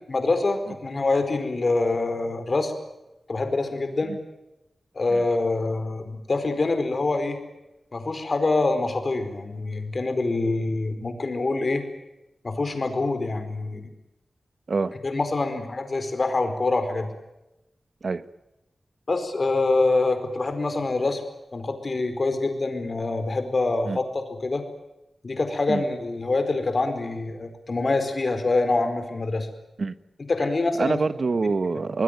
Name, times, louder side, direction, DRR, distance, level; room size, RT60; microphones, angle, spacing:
voice 1, 0.1-2.7 3.3-4.1 4.9-7.4 7.9-11.8 12.4-13.9 15.0-17.1 19.1-21.2 21.5-24.6 25.2-29.5 30.3-31.0, left 3 dB, 45° left, 4.8 m, -25 dB
voice 2, 30.8-32.0, right 4 dB, 55° right, 1.2 m, -25 dB
25.5 x 21.0 x 9.2 m
wide cardioid pair, 110°, 0 cm